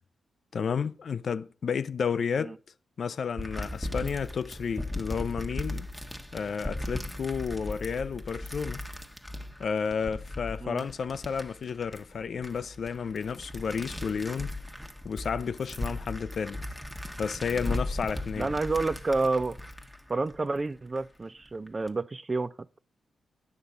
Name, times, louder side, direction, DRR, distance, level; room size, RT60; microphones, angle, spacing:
voice 1, 0.5-2.6 3.0-5.9 6.3-8.8 9.6-14.5 15.0-16.6 17.2-18.5, left 6 dB, 65° left, 0.4 m, -31 dB
sound 1, 3.4-21.0 21.5-21.9, left 1 dB, ahead, 1.2 m, -38 dB
voice 2, 18.4-19.6 20.1-22.5, right 3 dB, 35° right, 0.4 m, -29 dB
9.4 x 3.8 x 7.1 m
supercardioid pair, 50°, 0 cm